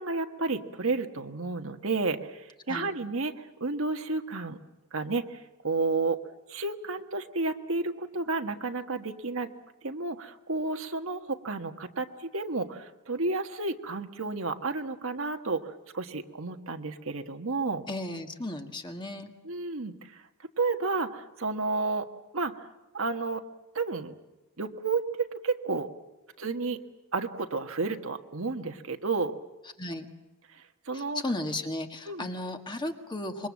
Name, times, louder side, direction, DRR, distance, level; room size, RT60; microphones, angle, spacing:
voice 1, 0.0-4.6 4.9-5.4 5.6-6.2 6.5-9.5 9.8-17.8 19.4-20.1 20.6-22.1 22.3-22.7 22.9-23.4 23.7-24.1 24.6-25.9 26.4-26.8 27.1-29.3 30.5-31.2 32.1-32.3, right 3 dB, 65° right, 6 dB, 1.5 m, -31 dB
voice 2, 17.9-19.3 29.8-30.1 30.9-33.5, left 1 dB, 20° left, 5 dB, 1.7 m, -35 dB
26.0 x 23.0 x 7.6 m, 1.1 s
head